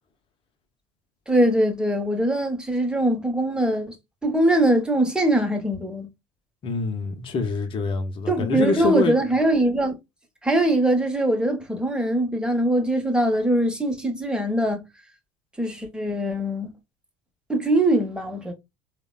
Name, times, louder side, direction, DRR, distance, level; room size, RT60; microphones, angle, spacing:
voice 1, 1.3-4.0 4.2-6.1 8.3-10.0 10.4-14.8 15.6-16.7 17.5-18.5, right 1 dB, 5° right, 0.8 m, -22 dB
voice 2, 6.6-9.1, left 3 dB, 40° left, 0.6 m, -25 dB
3.1 x 2.1 x 2.3 m
supercardioid pair, 80°, 14 cm